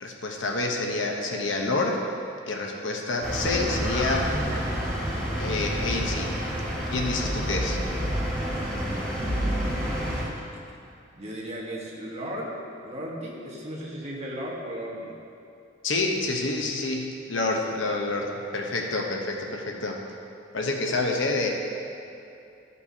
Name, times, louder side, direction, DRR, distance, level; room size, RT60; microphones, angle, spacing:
voice 1, 0.0-2.0 2.5-4.4 5.4-6.4 6.9-7.8 15.8-20.0 20.5-21.5, left 2 dB, 70° left, 1 dB, 0.9 m, -28 dB
sound 1, 3.2-10.2, equal, 5° left, 1.8 m, -28 dB
voice 2, 8.4-10.2 11.1-15.2, equal, 35° right, -4 dB, 1.4 m, -37 dB
13.5 x 5.5 x 2.8 m, 2.6 s
head